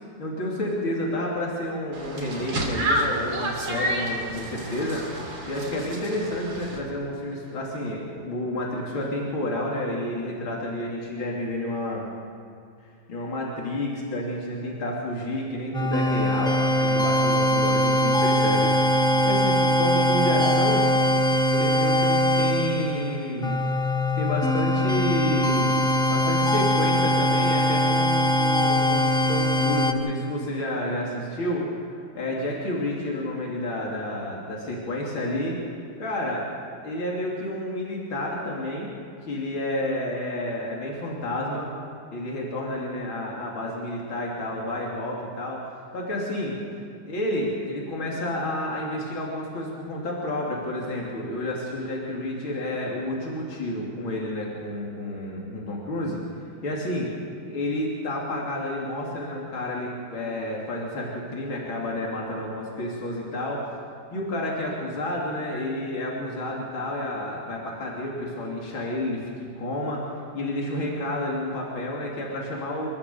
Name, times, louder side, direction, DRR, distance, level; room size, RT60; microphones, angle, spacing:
voice 1, 0.2-12.0 13.1-20.9 21.5-23.6 24.1-25.8 26.1-31.7 32.2-35.6 36.0-36.5 36.8-38.9 39.2-41.7 42.1-45.6 45.9-46.6 47.1-56.2 56.6-57.1 57.4-63.6 64.1-70.0 70.3-72.9, left 1 dB, 80° left, -3 dB, 3.9 m, -30 dB
sound 1, 1.9-6.8, right 1 dB, 65° right, 3.6 m, -30 dB
sound 2, 15.7-29.9, left 1 dB, 5° left, 0.4 m, -22 dB
27.0 x 13.5 x 7.0 m, 2.4 s
omnidirectional pair, 2.2 m